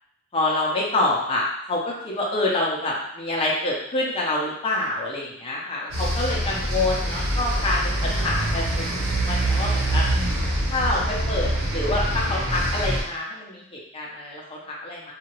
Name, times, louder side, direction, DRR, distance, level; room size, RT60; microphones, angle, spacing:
voice 1, 0.3-10.1 10.7-15.1, left 2 dB, 25° left, -4 dB, 0.6 m, -27 dB
sound 1, 5.9-13.0, right 1 dB, 90° right, 1.0 m, -25 dB
2.8 x 2.4 x 3.0 m, 0.75 s
head